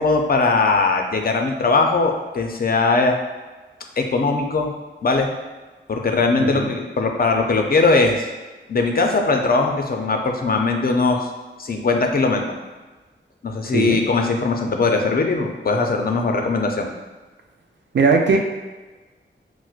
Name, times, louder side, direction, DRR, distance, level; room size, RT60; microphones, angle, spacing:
voice 1, 0.0-3.2 4.0-4.7 5.0-5.3 5.9-8.3 8.7-11.3 11.6-12.5 13.4-16.9, left 3 dB, 45° left, 3 dB, 0.4 m, -20 dB
voice 2, 6.4-6.7 13.6-14.0 17.9-18.4, right 4 dB, 60° right, 2 dB, 0.4 m, -19 dB
4.4 x 2.1 x 2.4 m, 1.3 s
cardioid pair, 60°, 21 cm